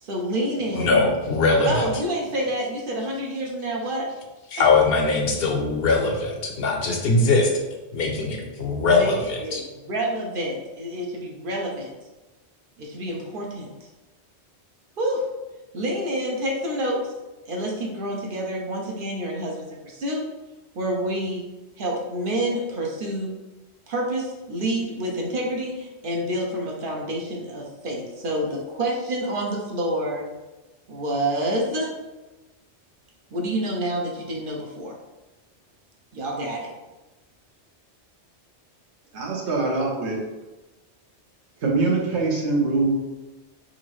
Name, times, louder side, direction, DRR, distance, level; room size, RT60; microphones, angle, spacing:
voice 1, 0.0-1.0 1.6-4.1 8.8-11.9 12.8-13.7 15.0-15.2 15.7-17.1 17.5-20.2 20.8-21.4 21.8-23.3 23.9-30.2 30.9-31.9 33.3-35.0 36.1-36.7, right 1 dB, 55° right, -1 dB, 0.7 m, -28 dB
voice 2, 0.8-1.8 4.5-7.5 7.9-9.6, left 3 dB, 65° left, 1 dB, 0.8 m, -21 dB
voice 3, 39.1-40.2 41.6-43.0, right 3 dB, 80° right, -2 dB, 1.1 m, -23 dB
3.9 x 2.5 x 3.0 m, 1.1 s
omnidirectional pair, 1.1 m